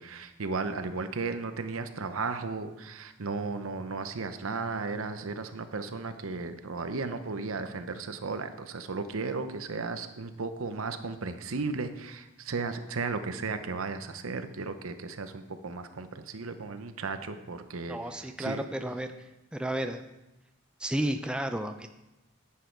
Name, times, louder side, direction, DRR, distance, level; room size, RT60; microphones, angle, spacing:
voice 1, 0.0-18.6, right 4 dB, 85° right, 9 dB, 0.8 m, -35 dB
voice 2, 17.9-19.1 19.5-20.0 20.8-21.9, right 1 dB, 5° right, 7 dB, 0.4 m, -32 dB
10.5 x 7.5 x 4.5 m, 0.95 s
head